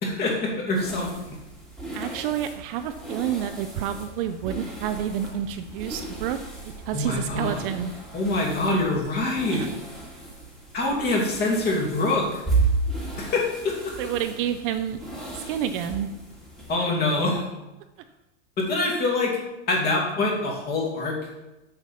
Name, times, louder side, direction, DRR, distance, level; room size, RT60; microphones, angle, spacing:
voice 1, 0.0-1.4 6.9-7.6 8.1-9.7 10.7-12.4 13.2-13.9 16.7-17.5 18.6-19.4 19.7-21.2, left 2 dB, 25° left, -1 dB, 2.3 m, -25 dB
sound 1, 0.7-16.7, right 3 dB, ahead, 2.0 m, -34 dB
voice 2, 1.9-6.4 6.9-7.9 9.5-9.7 14.0-15.0 15.3-16.1, right 10 dB, 45° right, 9 dB, 0.6 m, -29 dB
7.3 x 6.6 x 5.7 m, 1.0 s
supercardioid pair, 150°, 38 cm